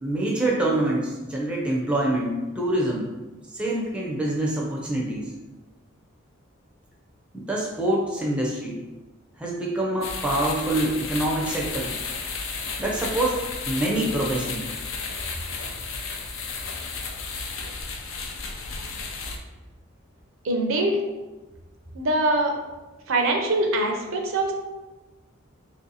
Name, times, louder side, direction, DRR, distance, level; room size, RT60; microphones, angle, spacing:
voice 1, 0.0-3.1 3.5-5.3 7.3-8.8 9.4-11.9 12.8-14.7, right 1 dB, 5° right, -3 dB, 0.5 m, -26 dB
sound 1, 10.0-19.4, left 4 dB, 65° left, 0.5 m, -33 dB
voice 2, 20.4-21.0 21.9-22.5 23.1-24.5, right 2 dB, 70° right, 3 dB, 0.5 m, -23 dB
3.1 x 2.6 x 4.0 m, 1.1 s
head